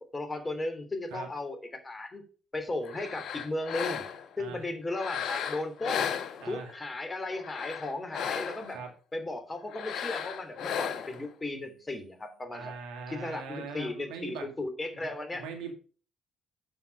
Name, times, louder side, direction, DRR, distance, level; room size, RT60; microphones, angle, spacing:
voice 1, 0.1-2.2 2.5-4.0 4.4-6.1 6.4-8.8 9.1-12.7 13.1-15.4, left 2 dB, 25° left, 7 dB, 3.1 m, -35 dB
sound 1, 2.8-4.4 4.9-6.8 7.3-8.8 9.7-11.3, left 8 dB, 70° left, 0.9 m, -35 dB
voice 2, 4.4-4.7 6.4-6.7 8.7-8.9 12.5-14.5 14.9-15.7, right 5 dB, 80° right, 4 dB, 2.1 m, -41 dB
9.3 x 5.9 x 5.2 m, 0.38 s
hypercardioid pair, 60°, 0 cm